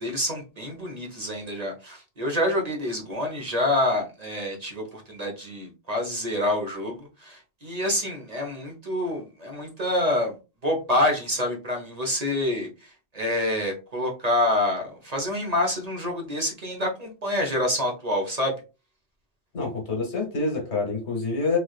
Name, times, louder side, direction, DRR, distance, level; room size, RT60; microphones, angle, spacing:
voice 1, 0.0-10.3 10.6-18.6, left 1 dB, 40° right, 0.9 m, -27 dB
voice 2, 19.5-21.6, left 3 dB, 70° left, 1.5 m, -27 dB
3.3 x 3.3 x 2.3 m
omnidirectional pair, 1.2 m